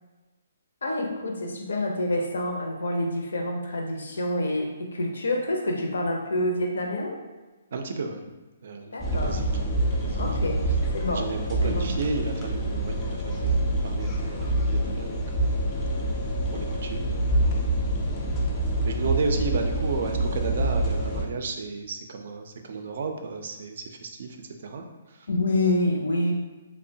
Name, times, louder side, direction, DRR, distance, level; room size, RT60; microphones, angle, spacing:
voice 1, 0.8-7.2 8.9-9.4 10.2-10.7 10.9-11.3 11.6-11.9 25.3-26.3, left 1 dB, 85° left, 2 dB, 0.5 m, -27 dB
voice 2, 7.7-8.2 8.6-9.6 9.9-10.2 11.1-15.6 16.5-17.3 18.8-25.3, right 3 dB, 60° right, 5 dB, 0.3 m, -33 dB
sound 1, 9.0-21.2, right 1 dB, 20° left, 0.3 m, -26 dB
2.7 x 2.1 x 2.6 m, 1.2 s
hypercardioid pair, 155°, 0 cm